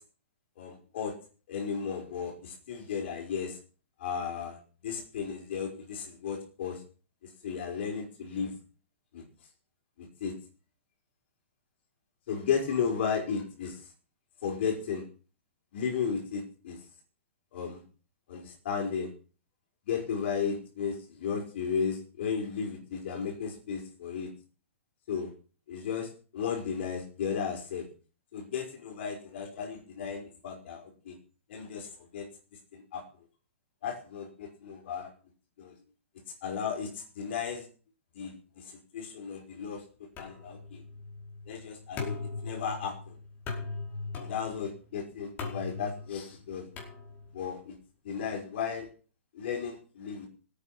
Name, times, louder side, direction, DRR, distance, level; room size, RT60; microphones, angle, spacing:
voice 1, 0.6-1.1 1.5-3.6 4.0-6.8 7.2-8.5 9.1-9.2 10.0-10.3 12.3-13.9 14.4-15.0 15.7-16.8 17.5-17.8 18.3-19.1 19.8-24.3 25.1-25.3 25.7-27.9 28.3-31.2 31.5-32.3 32.7-33.0 33.8-35.1 35.6-35.7 36.4-37.7 38.1-39.8 40.2-40.8 41.5-43.2 44.2-46.7 47.3-47.7 48.0-48.9 49.3-50.3, left 6 dB, 60° left, 2 dB, 5.5 m, -34 dB
sound 1, 40.2-47.5, left 4 dB, 25° left, 5.0 m, -40 dB
17.5 x 9.3 x 6.0 m, 0.38 s
hypercardioid pair, 140°, 7 cm